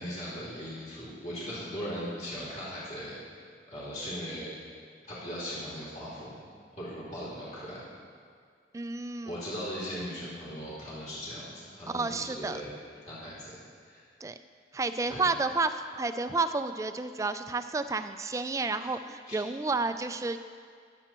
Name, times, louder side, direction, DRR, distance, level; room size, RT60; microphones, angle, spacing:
voice 1, 0.0-3.2 3.7-4.5 5.0-6.3 6.8-7.8 9.2-12.7 13.1-13.5 13.9-14.0 15.1-15.3 19.3-19.4, equal, 40° left, -8 dB, 3.0 m, -38 dB
voice 2, 8.7-9.3 11.9-12.6 14.2-14.4 14.7-20.4, right 3 dB, 20° right, 10 dB, 0.3 m, -31 dB
20.5 x 7.8 x 3.0 m, 2.1 s
head